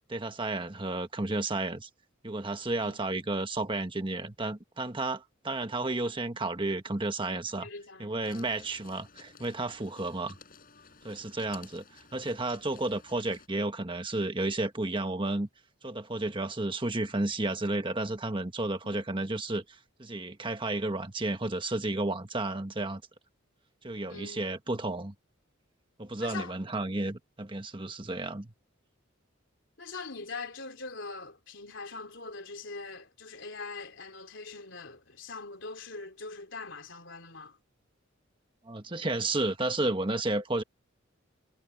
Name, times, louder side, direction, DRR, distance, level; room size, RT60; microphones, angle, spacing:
voice 1, 0.1-1.9 2.2-7.7 8.0-10.4 11.0-11.8 12.1-15.5 15.8-23.0 23.8-25.1 26.0-28.5 38.7-40.6, right 2 dB, 25° right, 1.4 m, -32 dB
voice 2, 7.6-8.6 24.1-24.5 26.2-26.5 29.8-37.6, left 3 dB, 65° left, 4.0 m, -42 dB
sound 1, 8.2-13.5, left 5 dB, 45° left, 6.3 m, -54 dB
head